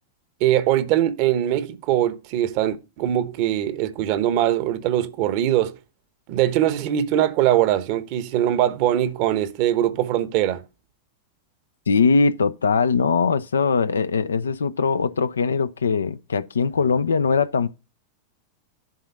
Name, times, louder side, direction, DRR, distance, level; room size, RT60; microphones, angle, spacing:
voice 1, 0.4-5.7 6.3-10.6, right 12 dB, 45° right, 1.0 m, -22 dB
voice 2, 11.9-17.7, left 5 dB, 70° left, 0.5 m, -21 dB
10.5 x 3.9 x 5.4 m
figure-of-eight pair, 90°, 0 cm